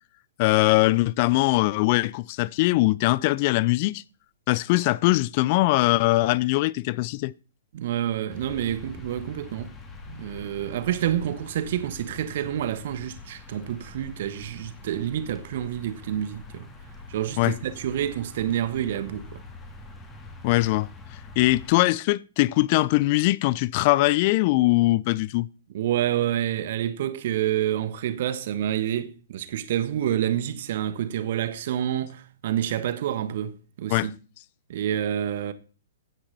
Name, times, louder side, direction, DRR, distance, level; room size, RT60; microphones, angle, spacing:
voice 1, 0.4-4.0 4.5-7.3 17.4-17.5 20.4-20.9 21.4-25.5 33.9-34.1, left 19 dB, 40° left, 0.5 m, -21 dB
voice 2, 7.7-9.7 10.1-16.7 17.1-19.4 25.7-34.1 34.7-35.5, right 11 dB, 50° right, 1.5 m, -28 dB
sound 1, 8.3-21.7, left 3 dB, 15° left, 3.3 m, -44 dB
15.5 x 9.8 x 4.2 m
figure-of-eight pair, 110°, 0 cm